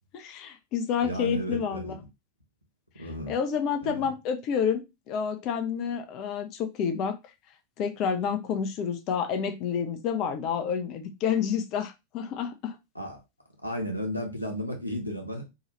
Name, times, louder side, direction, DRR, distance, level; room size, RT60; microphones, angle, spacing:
voice 1, 0.1-2.0 3.0-7.2 7.8-12.8, left 7 dB, 40° left, 0.5 m, -29 dB
voice 2, 1.0-2.1 3.0-3.4 3.8-4.1 12.9-13.2 13.6-15.5, equal, 90° right, 0.9 m, -34 dB
2.8 x 2.3 x 3.1 m
figure-of-eight pair, 90°, 0 cm